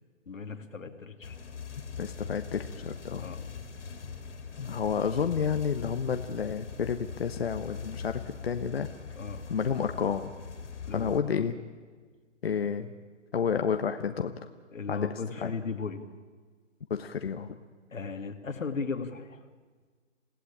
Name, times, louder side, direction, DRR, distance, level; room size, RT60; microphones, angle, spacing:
voice 1, 0.3-1.4 3.2-3.4 9.2-9.4 10.9-11.2 14.7-16.0 17.9-19.4, left 4 dB, 90° left, 7 dB, 2.7 m, -36 dB
sound 1, 1.2-11.2, left 5 dB, 65° left, 3.4 m, -42 dB
voice 2, 1.7-3.3 4.6-8.9 9.5-10.3 10.9-11.6 12.4-12.9 13.3-14.3 14.9-15.5 16.9-17.5, left 6 dB, 50° left, 7 dB, 1.2 m, -30 dB
28.0 x 17.0 x 8.8 m, 1.5 s
hypercardioid pair, 170°, 38 cm